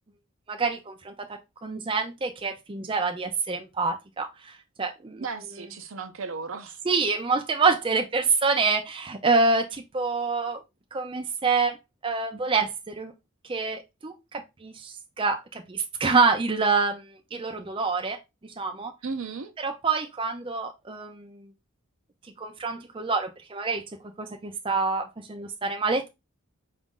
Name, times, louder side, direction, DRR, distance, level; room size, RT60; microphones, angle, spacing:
voice 1, 0.5-5.2 6.9-10.6 10.9-13.1 13.5-18.2 18.4-18.9 19.6-21.5 22.4-23.8 24.2-26.1, right 4 dB, 25° right, 0.5 m, -27 dB
voice 2, 5.2-6.8 19.0-19.5, right 4 dB, 65° right, 0.6 m, -35 dB
5.1 x 2.4 x 3.6 m
head